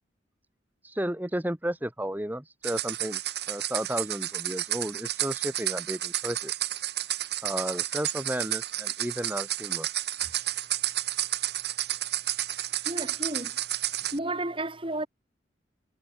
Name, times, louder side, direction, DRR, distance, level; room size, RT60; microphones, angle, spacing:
voice 1, 0.8-6.6 7.4-9.9, right 1 dB, 10° right, 1.3 m, -33 dB
sound 1, 2.6-14.2, right 13 dB, 65° right, 5.1 m, -31 dB
voice 2, 12.8-13.5 14.1-15.1, right 2 dB, 30° right, 5.1 m, -32 dB
head